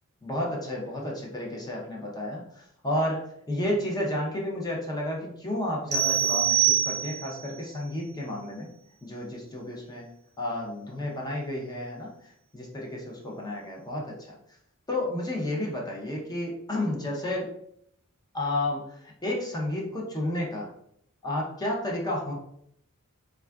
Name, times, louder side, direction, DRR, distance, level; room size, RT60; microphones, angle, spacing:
voice 1, 0.2-8.7 9.0-10.1 10.4-14.4 14.9-17.5 18.3-20.7 21.2-22.3, left 1 dB, 20° left, -2 dB, 0.5 m, -31 dB
sound 1, 5.9-7.4, right 10 dB, 50° right, 0.6 m, -24 dB
3.3 x 2.4 x 2.2 m, 0.71 s
head